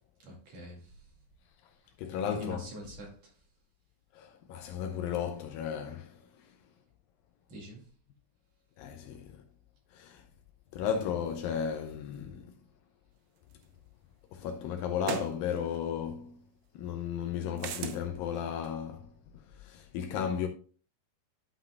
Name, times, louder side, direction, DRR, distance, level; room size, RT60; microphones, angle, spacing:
voice 1, 0.2-0.9 2.3-3.3 7.5-7.8, equal, 45° right, 2.9 m, -45 dB
voice 2, 2.0-2.7 4.2-6.2 8.8-9.3 9.9-10.2 10.7-12.5 14.3-16.4 16.8-19.1 19.6-20.5, left 8 dB, 90° left, 2.0 m, -34 dB
sound 1, 13.6-13.7 15.0-15.4 17.6-18.0, right 8 dB, 90° right, 3.1 m, -35 dB
11.5 x 5.9 x 2.2 m
omnidirectional pair, 4.8 m